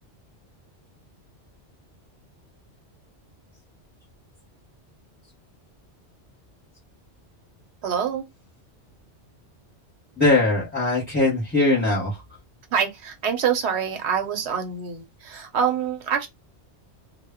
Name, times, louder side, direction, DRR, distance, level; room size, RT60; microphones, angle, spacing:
voice 1, 7.8-8.2 12.7-16.3, right 7 dB, 75° right, 0.9 m, -25 dB
voice 2, 10.2-12.2, left 2 dB, 10° left, 0.6 m, -20 dB
2.1 x 2.0 x 3.4 m
omnidirectional pair, 1.2 m